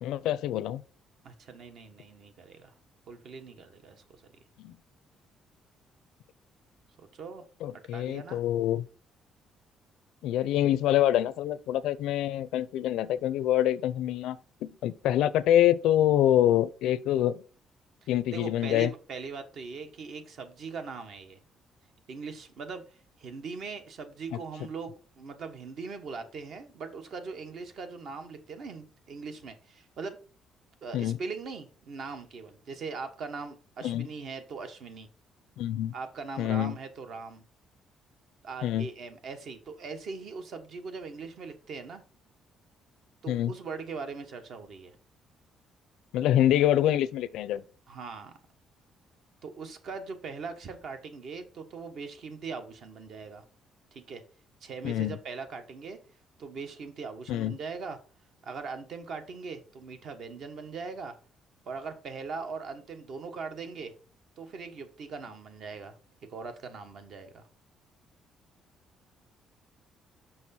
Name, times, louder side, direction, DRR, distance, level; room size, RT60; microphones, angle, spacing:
voice 1, 0.0-0.8 4.6-4.7 7.6-8.8 10.2-17.4 18.1-18.9 30.9-31.2 33.8-34.1 35.6-35.9 36.4-36.8 38.6-38.9 43.3-43.5 46.1-47.6 54.8-55.2 57.3-57.6, left 12 dB, 90° left, 0.5 m, -26 dB
voice 2, 1.2-2.7 3.1-4.2 7.0-7.5 7.9-8.4 18.0-21.4 22.1-30.2 30.8-35.1 35.9-37.5 38.4-42.0 43.2-44.9 47.9-48.3 49.4-53.4 53.9-54.2 54.6-56.0 56.4-58.0 58.4-61.2 61.7-63.9 64.4-65.9 66.3-67.5, right 4 dB, 55° right, 1.2 m, -40 dB
6.3 x 5.6 x 4.3 m
cardioid pair, 135°, 0 cm